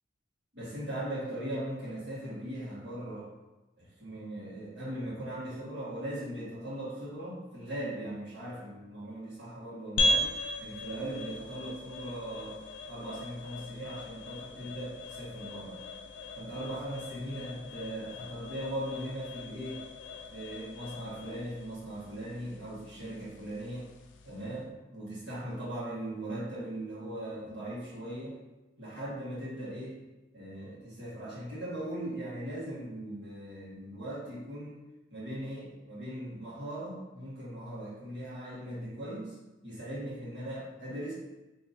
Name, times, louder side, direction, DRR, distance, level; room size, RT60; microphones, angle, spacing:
voice 1, 0.5-3.3 3.8-10.3 10.6-12.6 12.9-15.8 16.3-19.8 20.3-23.9 24.2-28.4 28.8-30.0 30.3-34.8 35.1-39.4 39.6-41.1, right 1 dB, 65° right, -8 dB, 1.4 m, -39 dB
sound 1, 10.0-24.6, left 1 dB, 70° left, 0.3 m, -38 dB
2.8 x 2.6 x 3.9 m, 1.1 s
head